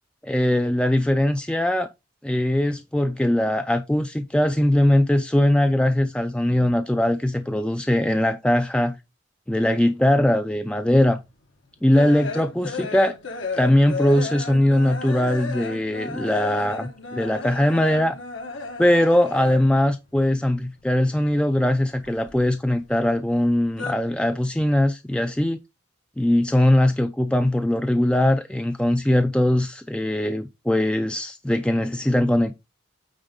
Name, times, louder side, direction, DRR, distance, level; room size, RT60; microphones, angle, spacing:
voice 1, 0.2-1.9 2.2-9.0 9.5-11.2 11.8-13.2 13.6-18.2 18.8-25.6 26.2-32.5, left 1 dB, 5° left, 0.3 m, -21 dB
sound 1, 11.1-19.9 20.1-21.3 21.6-23.0 23.3-23.9, left 4 dB, 75° left, 1.4 m, -34 dB
8.9 x 4.0 x 3.7 m
head